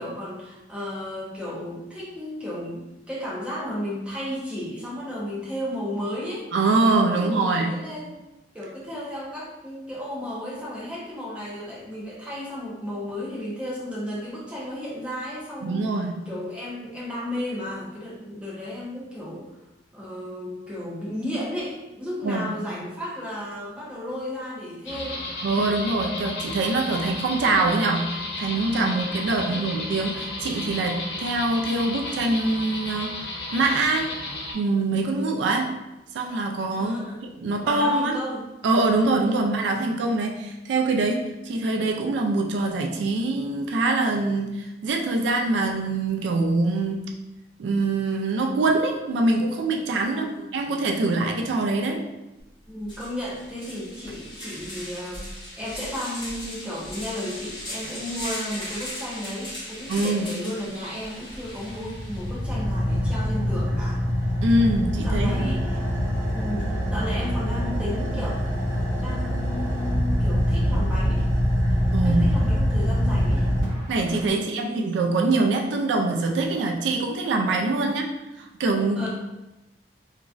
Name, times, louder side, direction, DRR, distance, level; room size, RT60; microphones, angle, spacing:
voice 1, 0.0-6.5 7.1-8.1 8.5-15.8 16.3-19.5 19.9-25.2 29.4-29.7 36.8-37.2 37.6-38.5 50.1-50.5 52.7-64.0 65.0-65.8 66.3-68.4 69.0-71.3 72.0-73.5 74.3-74.9 77.8-77.9 78.9-79.1, left 1 dB, 5° right, -7 dB, 0.7 m, -34 dB
voice 2, 6.5-7.8 15.6-16.3 22.2-22.5 25.4-34.2 34.5-35.8 36.1-37.0 37.4-38.2 38.6-47.1 47.6-52.1 59.9-60.3 64.4-65.6 71.9-72.2 73.9-78.1 78.4-79.1, right 2 dB, 85° right, 3 dB, 0.3 m, -24 dB
sound 1, 24.9-34.5, left 2 dB, 65° left, 0.6 m, -33 dB
sound 2, 52.4-52.5 52.8-62.4, left 1 dB, 25° left, 1.2 m, -38 dB
Car / Idling, 61.3-74.3, equal, 45° right, 1.5 m, -24 dB
3.0 x 2.4 x 2.4 m, 0.99 s
head